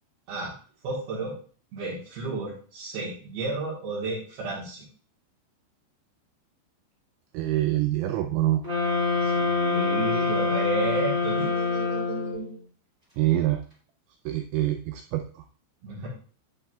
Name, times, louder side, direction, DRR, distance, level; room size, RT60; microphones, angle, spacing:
voice 1, 0.8-1.4 1.7-4.9 9.2-12.6 15.8-16.1, right 3 dB, 65° right, -6 dB, 3.0 m, -32 dB
voice 2, 7.3-8.6 13.2-13.6 14.3-15.4, right 14 dB, 85° right, 6 dB, 2.6 m, -25 dB
sound 1, 8.6-12.5, left 4 dB, 30° right, 1.0 m, -26 dB
9.1 x 8.1 x 2.4 m, 0.41 s
omnidirectional pair, 5.7 m